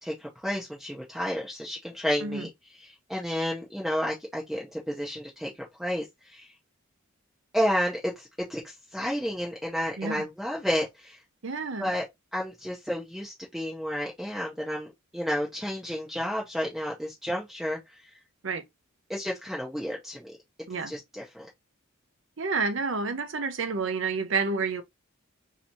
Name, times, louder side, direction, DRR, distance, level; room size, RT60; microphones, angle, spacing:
voice 1, 0.0-5.5 5.8-6.5 7.5-11.2 11.8-12.0 12.3-18.1 19.1-20.3 20.9-21.5, equal, ahead, 0.6 m, -31 dB
voice 2, 11.4-11.9 18.4-18.6 20.7-20.9 22.4-24.8, right 4 dB, 60° right, 0.6 m, -29 dB
3.3 x 2.8 x 2.6 m
head